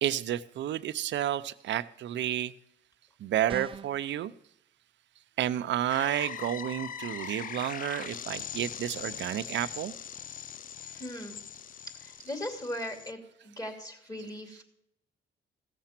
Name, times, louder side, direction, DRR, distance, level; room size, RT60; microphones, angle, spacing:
voice 1, 0.0-2.5 3.2-4.3 5.4-9.9, right 11 dB, 65° right, 13 dB, 0.6 m, -31 dB
sound 1, 3.5-4.0, right 7 dB, 25° right, 0.4 m, -40 dB
sound 2, 5.9-13.1, left 8 dB, 45° left, 0.5 m, -41 dB
voice 2, 10.8-11.4 12.0-13.2 13.4-14.6, left 1 dB, 20° left, 5 dB, 2.7 m, -38 dB
16.0 x 6.7 x 5.9 m, 0.77 s
cardioid pair, 90°, 20 cm